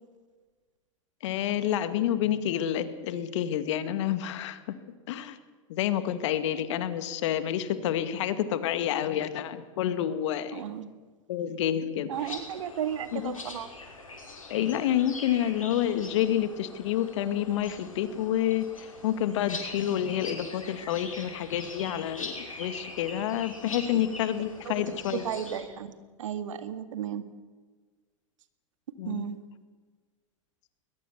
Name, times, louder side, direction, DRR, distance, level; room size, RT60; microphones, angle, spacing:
voice 1, 1.2-4.6 5.1-5.4 5.7-10.6 11.3-12.1 13.1-13.3 14.5-25.2 29.0-29.2, left 11 dB, 60° left, 11 dB, 2.1 m, -29 dB
voice 2, 10.5-10.9 12.1-13.7 24.6-24.8 25.1-25.9 26.2-27.2 29.0-29.4, right 9 dB, 70° right, 10 dB, 2.1 m, -34 dB
sound 1, 12.1-25.6, left 3 dB, 85° left, 5.8 m, -43 dB
21.5 x 21.0 x 7.2 m, 1.4 s
hypercardioid pair, 95°, 17 cm